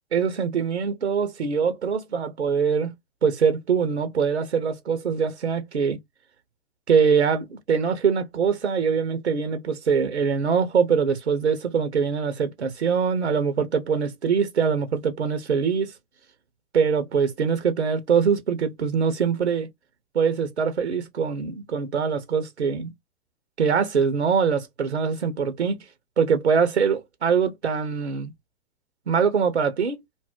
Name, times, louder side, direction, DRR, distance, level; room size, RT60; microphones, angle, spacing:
voice 1, 0.1-2.9 3.2-6.0 6.9-15.9 16.7-19.7 20.1-22.9 23.6-25.8 26.2-28.3 29.1-30.0, right 6 dB, 90° right, 0.8 m, -23 dB
2.6 x 2.1 x 3.6 m
hypercardioid pair, 105°, 33 cm